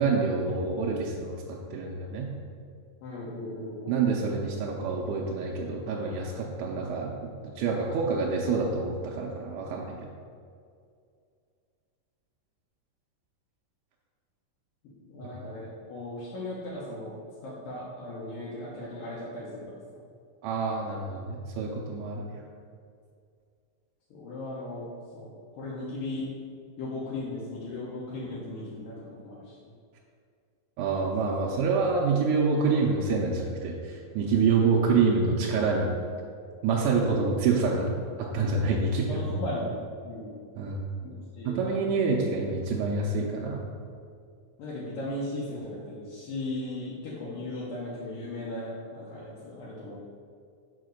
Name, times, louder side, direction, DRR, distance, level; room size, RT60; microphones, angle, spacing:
voice 1, 0.0-2.3 3.9-7.1 7.6-10.0 20.4-22.4 30.8-35.9 36.6-39.2 40.6-40.9 41.5-43.6, right 4 dB, 75° right, -3 dB, 2.0 m, -27 dB
voice 2, 3.0-4.0 15.1-17.2 17.4-20.0 24.1-24.9 25.1-26.3 26.8-29.6 31.0-31.1 34.3-34.7 39.1-39.7 40.0-40.4 41.0-42.1 42.8-42.9 44.6-50.0, left 1 dB, 75° left, -7 dB, 2.6 m, -37 dB
5.9 x 4.7 x 6.4 m, 2.3 s
omnidirectional pair, 4.1 m